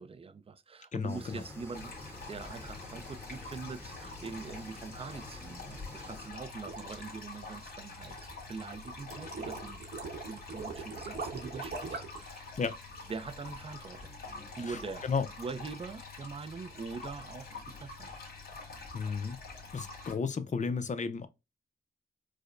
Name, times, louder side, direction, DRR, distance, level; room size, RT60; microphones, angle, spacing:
voice 1, 0.0-8.2 8.5-9.8 10.3-12.4 13.1-14.1 14.6-15.1 15.4-18.1, right 4 dB, 35° right, 0.4 m, -43 dB
voice 2, 0.9-1.4 12.6-12.7 14.7-14.8 15.0-15.3 18.9-19.4 19.7-21.3, left 5 dB, 45° left, 0.6 m, -33 dB
sound 1, 1.1-6.3, left 2 dB, 15° left, 1.3 m, -48 dB
sound 2, 1.7-20.1, left 3 dB, 60° left, 1.6 m, -46 dB
sound 3, 6.2-12.3, right 4 dB, 80° right, 1.0 m, -41 dB
4.8 x 2.1 x 2.5 m
wide cardioid pair, 85°, 17 cm